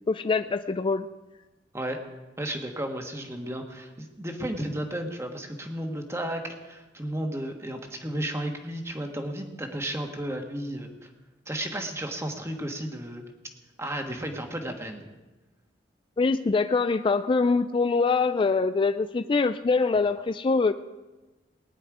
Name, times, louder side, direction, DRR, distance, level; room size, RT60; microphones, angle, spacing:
voice 1, 0.1-1.1 16.2-20.7, left 4 dB, 25° left, 10 dB, 0.3 m, -24 dB
voice 2, 2.4-11.1 11.5-13.2 13.8-15.0, right 1 dB, 15° right, 4 dB, 1.5 m, -33 dB
19.5 x 10.0 x 4.9 m, 1.1 s
head